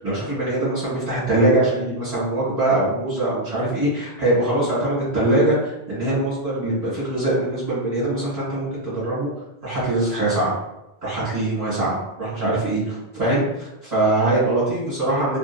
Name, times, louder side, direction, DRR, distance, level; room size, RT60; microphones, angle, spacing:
voice 1, 0.0-9.3 9.6-10.5 11.0-15.4, right 1 dB, 40° right, -10 dB, 1.2 m, -22 dB
2.5 x 2.3 x 2.5 m, 0.91 s
omnidirectional pair, 1.0 m